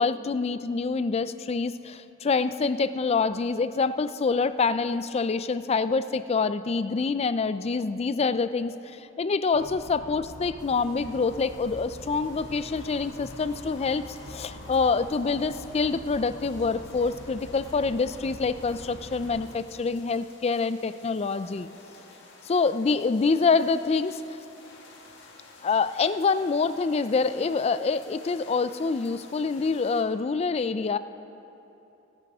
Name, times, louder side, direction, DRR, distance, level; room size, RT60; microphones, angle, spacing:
voice 1, 0.0-21.7 22.4-24.4 25.6-31.0, left 4 dB, 30° left, 14 dB, 0.3 m, -26 dB
sound 1, 9.5-19.5, equal, 80° left, 2.2 m, -44 dB
sound 2, 10.6-30.0, left 3 dB, 60° left, 1.8 m, -52 dB
27.0 x 9.7 x 3.5 m, 2.9 s
head